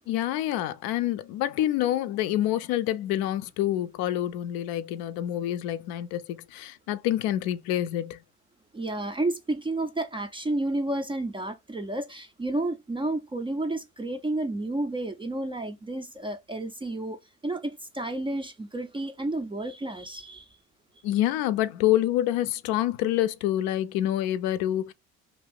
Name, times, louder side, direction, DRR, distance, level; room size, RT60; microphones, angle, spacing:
voice 1, 0.1-8.2 21.0-24.9, left 13 dB, 60° left, 0.5 m, -27 dB
voice 2, 8.7-17.2 17.4-20.5, right 2 dB, 15° right, 0.4 m, -31 dB
2.6 x 2.4 x 3.3 m
hypercardioid pair, 70°, 41 cm